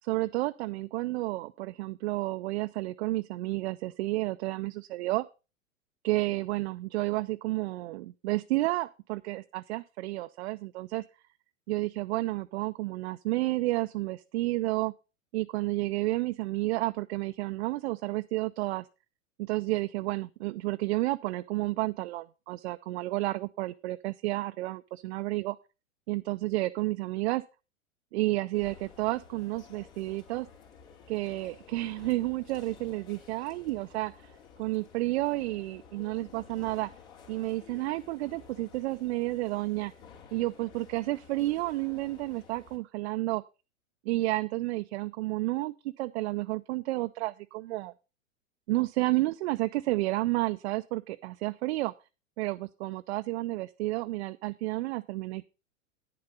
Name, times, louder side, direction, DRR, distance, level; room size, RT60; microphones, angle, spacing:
voice 1, 0.0-5.3 6.0-11.0 11.7-14.9 15.3-18.9 19.4-25.6 26.1-27.4 28.1-30.5 31.1-34.3 34.6-36.9 37.3-39.9 40.3-43.4 44.1-47.9 48.7-51.9 52.4-55.5, right 19 dB, 55° right, 10 dB, 0.5 m, -31 dB
sound 1, 28.5-42.8, left 6 dB, 55° left, 3.0 m, -53 dB
9.4 x 6.8 x 5.4 m, 0.31 s
hypercardioid pair, 110°, 41 cm